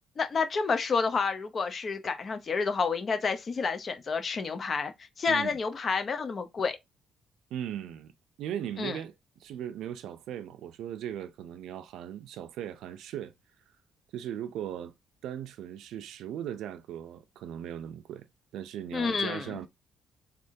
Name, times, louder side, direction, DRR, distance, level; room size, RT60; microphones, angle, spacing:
voice 1, 0.2-4.9 5.2-6.8 8.8-9.0 18.9-19.6, left 5 dB, 45° left, 0.9 m, -29 dB
voice 2, 5.3-5.6 7.5-8.1 8.4-13.3 14.1-14.9 15.2-18.3 18.5-19.7, right 10 dB, 85° right, 0.6 m, -38 dB
3.7 x 3.4 x 2.7 m
cardioid pair, 90°, 0 cm